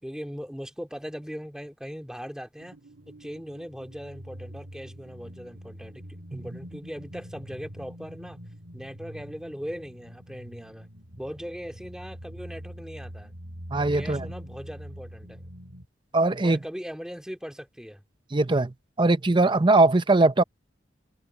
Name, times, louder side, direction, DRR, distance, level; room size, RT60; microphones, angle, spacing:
voice 1, 0.0-2.8 3.2-8.4 8.7-10.9 11.2-13.3 13.9-15.5 16.4-18.0, equal, 5° right, 2.3 m, -39 dB
sound 1, 2.6-15.9, equal, 75° right, 3.6 m, -44 dB
voice 2, 13.7-14.2 16.1-16.6 18.3-20.4, right 2 dB, 25° right, 0.7 m, -21 dB
head